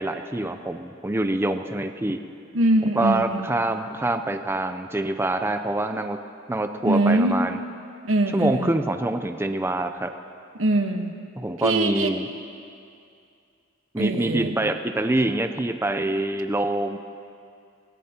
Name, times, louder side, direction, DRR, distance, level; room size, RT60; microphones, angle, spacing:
voice 1, 0.0-2.2 3.0-6.2 6.5-7.6 8.3-10.1 11.4-12.3 13.9-17.0, right 2 dB, 10° right, 7 dB, 0.5 m, -25 dB
voice 2, 2.5-3.5 6.8-7.4 8.0-8.7 10.5-11.2 11.6-12.1 14.0-14.5, right 1 dB, 85° right, 5 dB, 1.2 m, -22 dB
26.0 x 18.0 x 2.9 m, 2.4 s
head